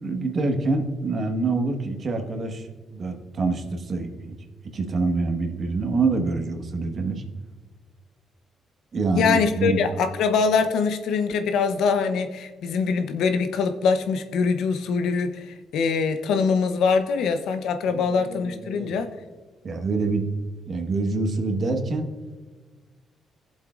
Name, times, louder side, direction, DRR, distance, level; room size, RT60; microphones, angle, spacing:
voice 1, 0.0-4.3 4.7-7.2 8.9-9.8 17.9-19.0 19.6-20.3 20.7-22.1, right 3 dB, 50° right, 4 dB, 1.4 m, -26 dB
voice 2, 9.1-19.1, left 5 dB, 80° left, 8 dB, 0.7 m, -23 dB
17.0 x 7.5 x 2.5 m, 1.3 s
cardioid pair, 90°, 0 cm